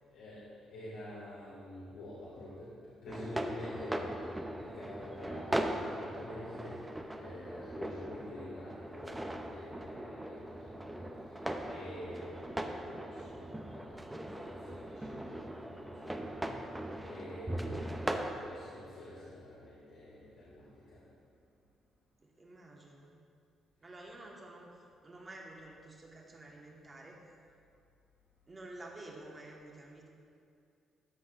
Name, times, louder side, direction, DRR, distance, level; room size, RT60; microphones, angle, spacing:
voice 1, 0.1-4.3 4.6-21.0, left 1 dB, 85° left, -9 dB, 1.9 m, -48 dB
sound 1, 3.1-18.3, right 1 dB, 10° right, 0.6 m, -39 dB
voice 2, 22.2-23.2 23.8-24.7 25.0-27.2 28.5-30.1, right 2 dB, 30° right, -1 dB, 1.4 m, -50 dB
13.0 x 6.0 x 2.5 m, 2.5 s
cardioid pair, 90°, 0 cm